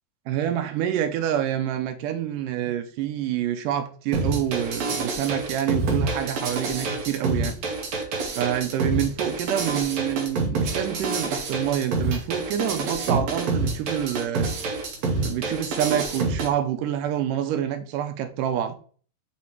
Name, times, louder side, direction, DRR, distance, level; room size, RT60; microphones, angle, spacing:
voice 1, 0.3-7.6 8.4-14.5 15.2-18.8, right 10 dB, 85° right, 2.2 m, -27 dB
sound 1, 4.1-16.5, right 3 dB, 65° right, 1.9 m, -27 dB
5.8 x 3.5 x 4.5 m
omnidirectional pair, 3.8 m